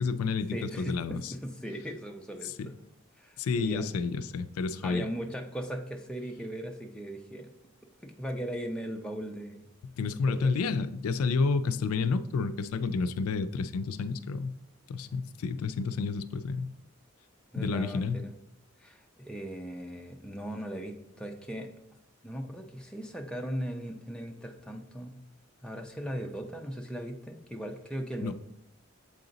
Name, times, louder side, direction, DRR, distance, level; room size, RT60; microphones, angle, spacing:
voice 1, 0.0-1.3 2.4-2.7 3.4-5.1 10.0-14.5 14.9-16.7 17.6-18.2 28.2-28.3, left 4 dB, 85° left, 13 dB, 0.4 m, -30 dB
voice 2, 0.5-2.7 3.2-3.9 4.8-7.5 8.0-9.7 10.3-10.5 17.5-18.3 18.8-21.7 22.2-25.2 25.6-28.3, equal, 5° left, 2 dB, 0.5 m, -38 dB
7.6 x 3.9 x 3.9 m, 0.82 s
head